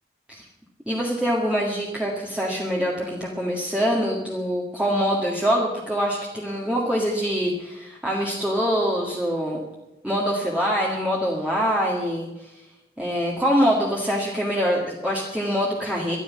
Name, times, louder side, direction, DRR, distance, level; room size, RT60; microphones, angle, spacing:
voice 1, 0.9-9.6 10.0-12.5 13.0-16.2, equal, 5° right, -4 dB, 1.9 m, -24 dB
13.5 x 11.5 x 7.4 m, 0.98 s
head